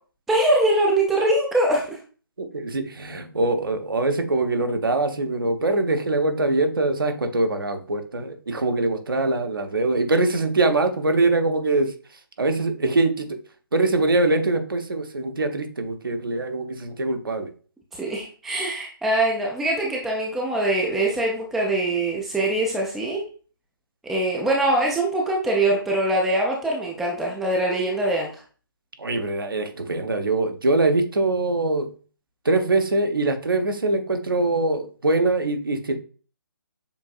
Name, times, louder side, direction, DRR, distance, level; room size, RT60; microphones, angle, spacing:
voice 1, 0.3-2.0 17.9-23.3 24.0-28.4, right 1 dB, ahead, -1 dB, 0.3 m, -23 dB
voice 2, 2.4-11.9 12.4-13.4 13.7-17.5 29.0-31.9 32.4-36.0, right 2 dB, 70° right, 6 dB, 0.9 m, -23 dB
7.0 x 2.6 x 2.4 m, 0.38 s
figure-of-eight pair, 145°, 12 cm